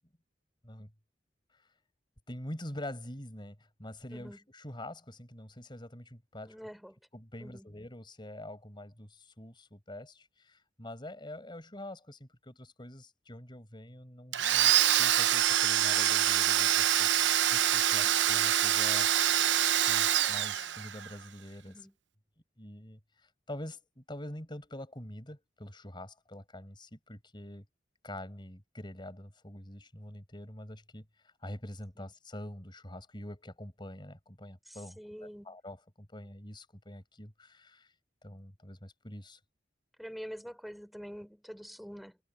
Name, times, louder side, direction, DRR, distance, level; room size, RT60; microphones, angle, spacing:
voice 1, 2.3-6.6 7.1-19.1 19.8-21.8 22.6-27.6 28.0-31.1 31.4-37.9 38.2-39.4, left 1 dB, 25° left, 5.2 m, -45 dB
voice 2, 6.4-7.0 7.4-7.7 18.0-18.2 21.6-21.9 32.0-32.1 34.7-35.5 40.0-42.2, equal, ahead, 5.5 m, -46 dB
Domestic sounds home sounds, 14.3-21.1, right 11 dB, 80° right, 0.8 m, -25 dB
head